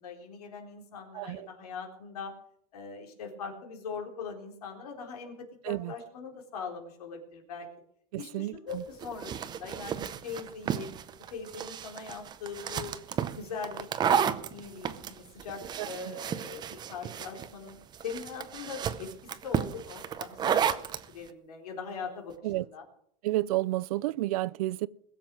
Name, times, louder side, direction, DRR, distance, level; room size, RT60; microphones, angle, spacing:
voice 1, 0.0-2.3 2.7-7.7 8.2-10.9 11.3-13.0 13.3-17.8 18.0-22.8, left 5 dB, 90° left, 3.9 m, -41 dB
voice 2, 1.1-1.5 5.6-5.9 8.1-8.8 15.8-15.9 22.4-22.6 23.2-24.9, right 17 dB, 75° right, 0.6 m, -31 dB
sound 1, 8.7-21.0, right 8 dB, 20° right, 0.7 m, -32 dB
21.0 x 7.6 x 6.2 m
supercardioid pair, 145°, 19 cm